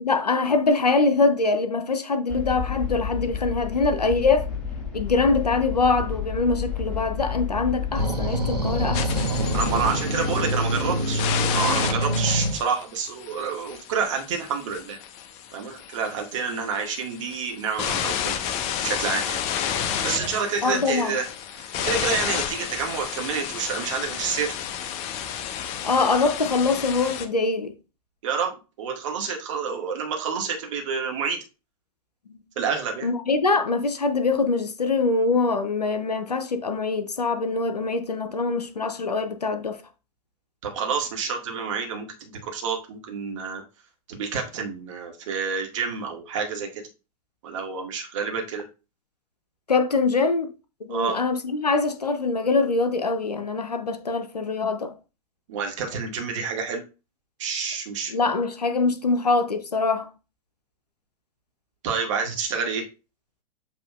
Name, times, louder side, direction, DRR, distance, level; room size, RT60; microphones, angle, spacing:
voice 1, 0.0-4.5 4.9-9.1 20.6-21.2 25.8-27.7 32.3-32.4 33.0-39.8 49.7-50.5 50.9-54.9 58.1-60.1, left 3 dB, 85° left, 0.6 m, -23 dB
sound 1, 2.3-9.9, left 7 dB, 5° left, 2.7 m, -31 dB
sound 2, 7.9-12.6 19.8-20.3, right 1 dB, 85° right, 0.9 m, -26 dB
sound 3, 8.9-27.3, left 9 dB, 35° left, 0.6 m, -31 dB
voice 2, 9.5-11.2 11.5-15.0 15.5-18.4 18.8-19.4 20.0-21.3 21.5-24.6 28.2-31.4 32.5-33.1 40.6-43.6 44.1-46.8 47.4-48.6 50.9-51.2 55.5-56.8 57.4-58.1 61.8-62.8, right 5 dB, 50° right, 1.4 m, -28 dB
7.4 x 2.8 x 2.4 m
figure-of-eight pair, 100°, 20 cm